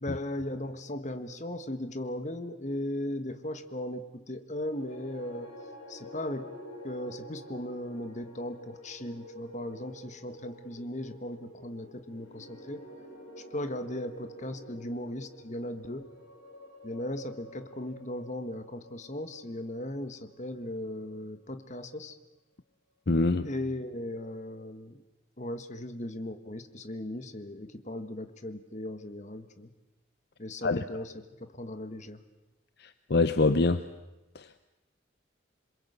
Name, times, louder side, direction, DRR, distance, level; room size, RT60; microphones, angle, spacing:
voice 1, 0.0-5.5 5.9-6.5 6.8-12.8 13.5-16.1 16.8-22.1 23.4-25.0 25.4-29.7 30.4-32.2, left 1 dB, 40° left, 9 dB, 1.6 m, -37 dB
sound 1, 4.6-20.9, equal, 90° left, 5.4 m, -49 dB
voice 2, 23.1-23.5 30.6-30.8 32.8-33.9 34.3-34.6, left 3 dB, 55° left, 11 dB, 0.8 m, -25 dB
27.5 x 22.0 x 8.1 m, 1.0 s
head